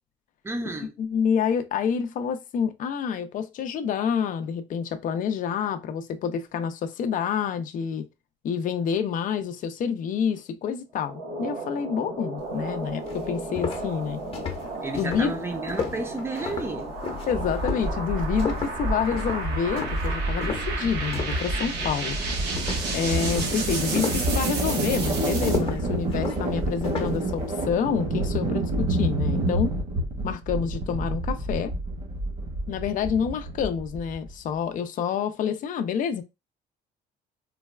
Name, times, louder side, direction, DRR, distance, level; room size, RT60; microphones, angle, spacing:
voice 1, 0.4-0.9 14.8-16.9, right 2 dB, 15° right, 0.7 m, -32 dB
voice 2, 1.0-8.1 8.4-14.2 15.0-15.3 17.3-22.2 22.9-29.8 30.2-31.7 32.7-36.2, left 7 dB, 50° left, 0.5 m, -28 dB
sound 1, 11.0-25.6, right 3 dB, 80° right, 1.0 m, -33 dB
sound 2, 12.6-12.7 13.1-21.5 21.8-22.2 22.6-27.3, left 6 dB, 35° left, 0.9 m, -34 dB
sound 3, 17.3-34.3, right 2 dB, 50° right, 1.4 m, -28 dB
3.9 x 2.2 x 2.2 m
cardioid pair, 110°, 17 cm